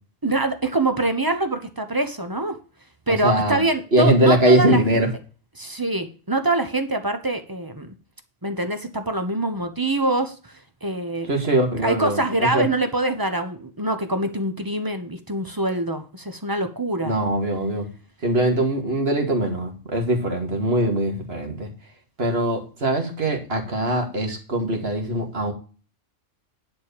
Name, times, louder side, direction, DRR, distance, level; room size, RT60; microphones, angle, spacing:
voice 1, 0.2-2.6 3.1-4.8 5.6-7.9 8.4-10.5 10.8-11.3 11.8-17.2, right 2 dB, 20° right, 8 dB, 1.0 m, -24 dB
voice 2, 3.1-3.6 3.9-5.1 11.2-12.7 17.0-17.9 18.2-21.7 22.2-25.5, right 1 dB, 55° right, 2 dB, 2.4 m, -22 dB
10.5 x 4.6 x 6.9 m, 0.36 s
omnidirectional pair, 1.3 m